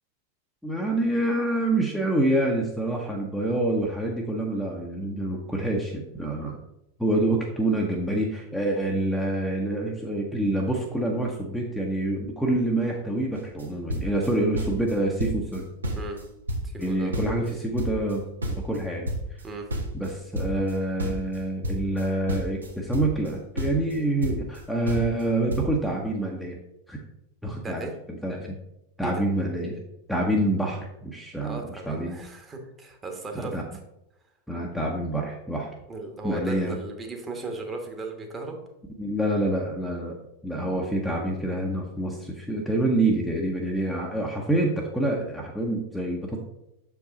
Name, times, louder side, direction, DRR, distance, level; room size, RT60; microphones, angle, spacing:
voice 1, 0.6-6.6 7.0-15.6 16.8-18.2 18.6-19.4 19.9-26.6 26.9-27.0 27.4-28.6 29.0-29.8 30.1-32.2 33.3-33.6 34.5-35.7 36.2-36.8 39.0-40.1 40.4-46.4, right 1 dB, ahead, -1 dB, 0.8 m, -27 dB
sound 1, 13.4-13.6 13.9-14.9 15.2-15.6 15.8-17.5 17.8-20.7 21.0-23.3 23.6-24.6 24.9-25.3 25.5-25.7, right 1 dB, 75° right, 1.2 m, -30 dB
voice 2, 16.6-17.1 19.4-19.6 27.6-27.9 29.0-29.2 31.4-33.8 35.9-38.6, right 2 dB, 20° right, 3 dB, 1.3 m, -36 dB
7.1 x 4.7 x 3.9 m, 0.87 s
figure-of-eight pair, 90°, 0 cm